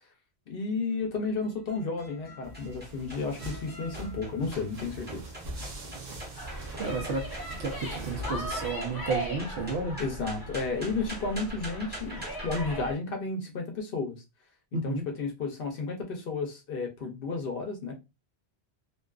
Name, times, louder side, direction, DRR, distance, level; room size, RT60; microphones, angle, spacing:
voice 1, 0.5-5.3 10.0-14.2 14.8-18.0, left 4 dB, 65° left, 0.7 m, -32 dB
sound 1, 0.9-12.6, right 1 dB, 10° right, 0.8 m, -46 dB
sound 2, 2.4-8.7, right 1 dB, 50° right, 0.7 m, -42 dB
sound 3, 6.4-12.9, right 1 dB, 25° left, 0.6 m, -38 dB
voice 2, 6.8-7.3 7.6-10.0 14.7-15.1, right 3 dB, 75° right, 0.9 m, -32 dB
2.5 x 2.3 x 2.2 m
omnidirectional pair, 1.1 m